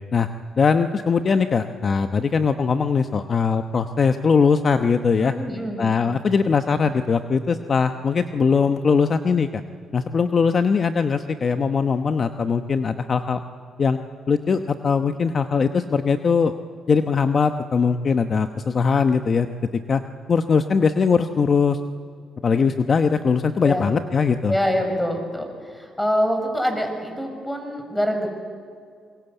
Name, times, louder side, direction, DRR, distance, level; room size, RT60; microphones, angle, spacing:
voice 1, 0.6-5.3 5.8-9.6 9.9-13.4 13.8-14.0 14.3-16.5 16.9-19.5 19.9-20.0 20.3-21.8 22.4-24.6, left 5 dB, 45° left, 8 dB, 1.0 m, -20 dB
voice 2, 5.2-5.8 23.6-23.8 24.5-28.3, equal, 5° left, 5 dB, 5.9 m, -25 dB
25.5 x 22.5 x 8.1 m, 2.2 s
cardioid pair, 90°, 0 cm